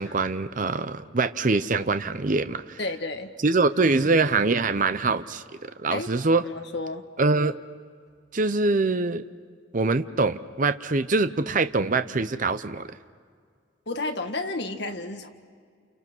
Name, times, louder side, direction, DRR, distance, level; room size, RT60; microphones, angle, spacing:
voice 1, 0.0-2.8 3.4-6.4 7.2-7.6 8.3-9.2 9.7-12.9, right 3 dB, 45° right, 10 dB, 0.7 m, -24 dB
voice 2, 2.8-3.3 5.9-6.1 6.5-7.0 13.9-15.3, left 2 dB, 60° left, 6 dB, 1.8 m, -31 dB
29.5 x 29.5 x 6.2 m, 2.1 s
head